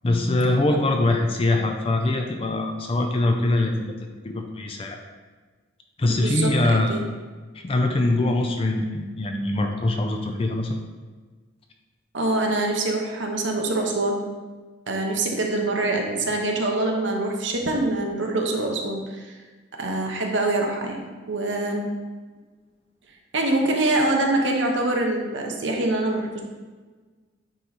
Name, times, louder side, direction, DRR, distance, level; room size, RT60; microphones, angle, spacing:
voice 1, 0.0-5.0 6.0-7.0 7.5-10.8, left 2 dB, 30° left, 3 dB, 0.4 m, -23 dB
voice 2, 6.0-7.0 12.1-14.2 14.9-19.3 19.8-21.0 21.3-21.9 23.3-26.4, right 2 dB, 65° right, 1 dB, 0.8 m, -24 dB
9.0 x 3.0 x 4.0 m, 1.4 s
head